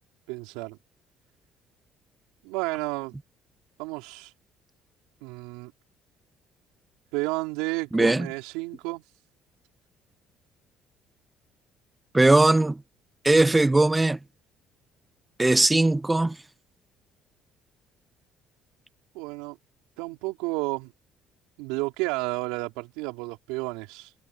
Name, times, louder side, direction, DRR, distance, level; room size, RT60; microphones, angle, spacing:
voice 1, 0.3-0.8 2.4-3.1 3.8-4.3 5.2-5.7 7.1-9.1 19.1-19.6 20.0-20.9 21.6-24.1, right 23 dB, 85° right, 4.0 m, -31 dB
voice 2, 7.9-8.3 12.1-12.8 13.2-14.2 15.4-16.3, right 2 dB, 15° right, 1.0 m, -19 dB
supercardioid pair, 75°, 0 cm